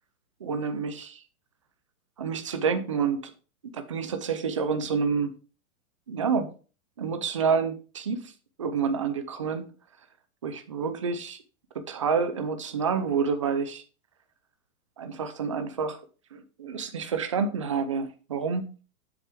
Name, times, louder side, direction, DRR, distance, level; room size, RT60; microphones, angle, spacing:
voice 1, 0.4-1.2 2.2-3.3 3.6-5.4 6.1-6.5 7.0-8.3 8.6-9.7 10.4-11.4 11.7-13.8 15.0-16.0 16.3-18.7, right 5 dB, 25° right, 9 dB, 0.4 m, -28 dB
7.4 x 6.8 x 3.4 m, 0.36 s
supercardioid pair, 170°, 43 cm